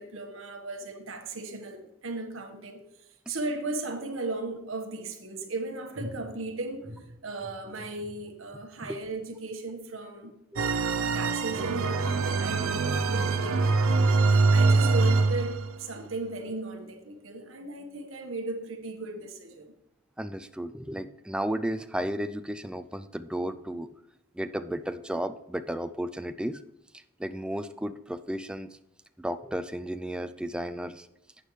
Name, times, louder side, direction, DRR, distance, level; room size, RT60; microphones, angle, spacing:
voice 1, 0.0-2.8 3.3-10.3 11.1-14.1 14.5-19.7, right 2 dB, 70° right, 4 dB, 1.4 m, -36 dB
sound 1, 10.6-15.8, right 3 dB, 90° right, 0.6 m, -24 dB
voice 2, 20.2-23.9 24.3-26.6 26.9-28.7 29.2-31.1, right 1 dB, 5° right, 10 dB, 0.4 m, -33 dB
11.5 x 8.3 x 3.2 m, 0.87 s
head